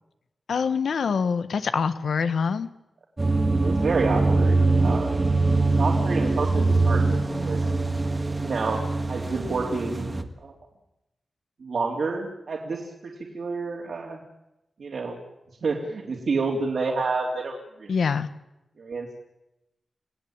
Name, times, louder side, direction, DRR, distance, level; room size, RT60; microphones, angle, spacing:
voice 1, 0.5-2.7 17.9-18.3, left 6 dB, 80° left, 11 dB, 1.4 m, -25 dB
sound 1, 3.2-10.2, right 3 dB, 20° right, 1.8 m, -23 dB
voice 2, 3.6-5.3 5.8-7.6 8.4-8.8 9.1-10.5 11.6-14.2 14.8-15.2 15.6-17.5 17.8-17.9 18.8-19.2, right 4 dB, 60° right, -1 dB, 3.3 m, -29 dB
29.5 x 18.5 x 8.9 m, 0.93 s
wide cardioid pair, 175°, 0 cm